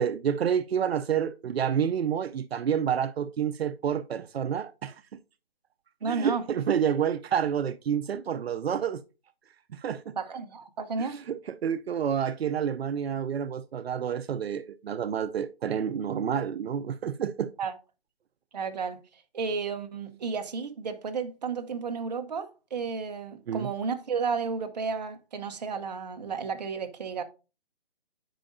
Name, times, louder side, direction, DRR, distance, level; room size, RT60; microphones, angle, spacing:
voice 1, 0.0-5.0 6.0-9.0 9.7-10.1 11.0-17.5 23.5-23.7, right 8 dB, 80° right, 0.5 m, -29 dB
voice 2, 6.0-6.4 10.2-11.2 17.6-17.7 18.5-19.0 19.3-27.2, right 5 dB, 45° right, 0.8 m, -32 dB
9.0 x 5.0 x 2.6 m
hypercardioid pair, 170°, 30 cm